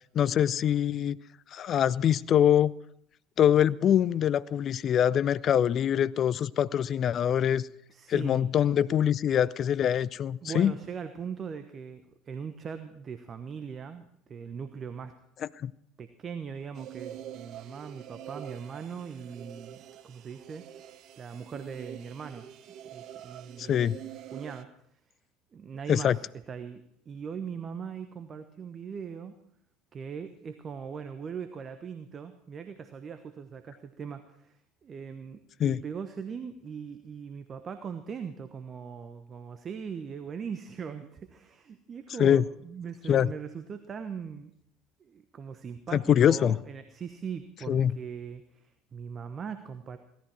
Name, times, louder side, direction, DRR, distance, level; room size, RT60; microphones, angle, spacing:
voice 1, 0.1-1.2 1.5-2.7 3.4-7.7 8.1-10.8 15.6-15.7 23.6-24.0 25.9-26.2 35.6-35.8 42.2-42.4 43.1-43.3 45.9-46.6 47.7-47.9, left 9 dB, 45° left, 18 dB, 0.5 m, -24 dB
voice 2, 7.9-8.5 10.4-15.1 16.0-19.8 20.0-20.7 21.2-22.5 22.9-23.8 24.3-24.7 25.5-29.3 29.9-34.6 34.8-44.5 45.0-50.0, right 6 dB, 35° right, 9 dB, 1.1 m, -40 dB
sound 1, 16.7-24.6, right 11 dB, 50° right, 0.8 m, -45 dB
17.0 x 13.5 x 4.6 m, 0.72 s
figure-of-eight pair, 65°, 0 cm